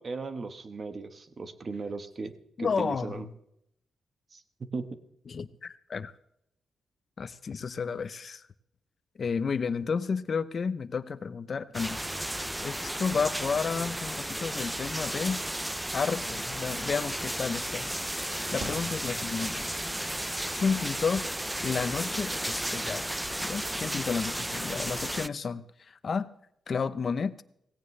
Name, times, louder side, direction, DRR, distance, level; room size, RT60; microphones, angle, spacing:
voice 1, 0.0-2.3 2.6-3.3 4.3-4.9, right 4 dB, 40° right, 10 dB, 1.3 m, -37 dB
voice 2, 2.6-3.3 5.3-6.1 7.2-8.4 9.2-12.0 12.3-15.4 15.9-18.2 18.5-19.7 20.5-21.3 21.6-26.3 26.7-27.4, left 5 dB, 45° left, 15 dB, 0.7 m, -32 dB
sound 1, 11.7-25.3, right 1 dB, 5° right, 0.4 m, -34 dB
Fireworks, 18.6-23.0 23.2-24.0, right 3 dB, 75° right, 4.1 m, -49 dB
17.5 x 17.0 x 3.3 m, 0.76 s
cardioid pair, 110°, 0 cm